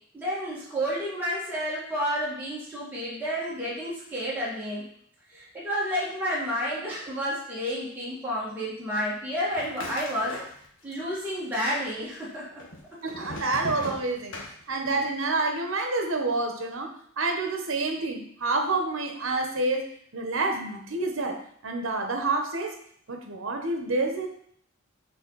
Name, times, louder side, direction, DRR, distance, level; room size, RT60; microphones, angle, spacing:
voice 1, 0.1-4.8 5.3-10.4 10.8-12.6 12.9-13.4, equal, 10° right, -8 dB, 1.7 m, -30 dB
sound 1, 9.5-11.0 11.2-12.0 12.6-15.1, left 1 dB, 70° left, 1.1 m, -39 dB
voice 2, 13.0-14.4 14.7-22.8 23.1-24.3, right 3 dB, 70° right, 4 dB, 0.9 m, -28 dB
6.1 x 3.9 x 3.9 m, 0.64 s
head